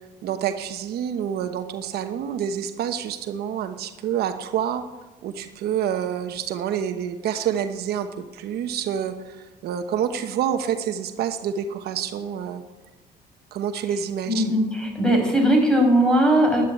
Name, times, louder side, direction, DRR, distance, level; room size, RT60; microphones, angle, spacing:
voice 1, 0.2-4.8 5.2-8.1 8.3-12.6 13.5-14.5, right 9 dB, 70° right, 7 dB, 1.0 m, -27 dB
voice 2, 14.3-16.6, right 1 dB, 5° left, 1 dB, 5.6 m, -19 dB
11.0 x 11.0 x 8.7 m, 1.2 s
cardioid pair, 110°, 17 cm